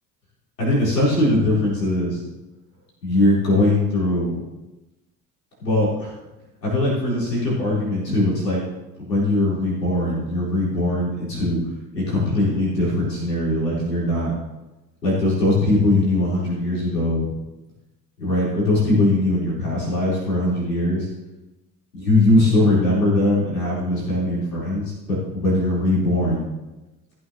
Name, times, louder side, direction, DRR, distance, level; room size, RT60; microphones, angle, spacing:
voice 1, 0.6-2.2 3.0-4.4 5.6-6.1 6.6-8.6 9.0-11.6 11.9-14.3 15.0-17.3 18.2-21.1 22.0-26.4, left 1 dB, 90° left, -7 dB, 4.4 m, -21 dB
14.5 x 8.6 x 3.1 m, 1.0 s
figure-of-eight pair, 60°, 48 cm